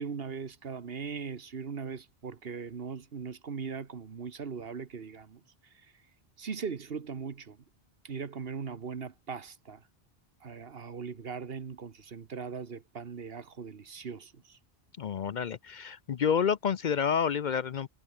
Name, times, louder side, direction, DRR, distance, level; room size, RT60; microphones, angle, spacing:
voice 1, 0.0-5.4 6.4-7.6 8.0-9.8 10.4-14.6, right 6 dB, 70° right, 1.5 m, -39 dB
voice 2, 15.0-17.9, left 7 dB, 55° left, 0.6 m, -29 dB
omnidirectional pair, 1.0 m